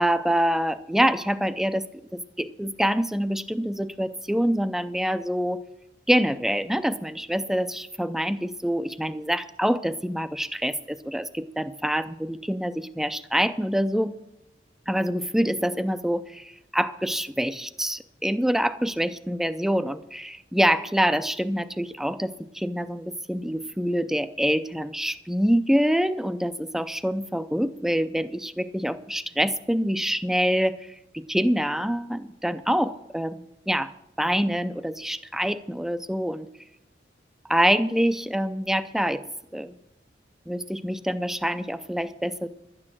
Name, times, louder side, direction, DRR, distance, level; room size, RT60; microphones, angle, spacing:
voice 1, 0.0-1.9 2.1-5.6 6.1-14.1 14.9-33.9 34.2-36.5 37.5-39.2 39.5-39.8 40.5-42.5, equal, ahead, 12 dB, 0.4 m, -26 dB
12.0 x 9.8 x 6.2 m, 0.86 s
head